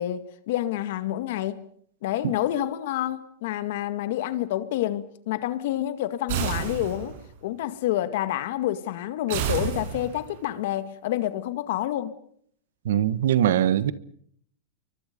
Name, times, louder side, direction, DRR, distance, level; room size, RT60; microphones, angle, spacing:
voice 1, 0.0-1.6 2.0-12.1, left 13 dB, 65° left, 2.0 m, -28 dB
sound 1, 6.3-7.3 9.3-10.4, right 9 dB, 60° right, 7.4 m, -29 dB
voice 2, 12.8-13.9, right 11 dB, 80° right, 1.4 m, -21 dB
29.5 x 23.5 x 5.3 m
supercardioid pair, 145°, 0 cm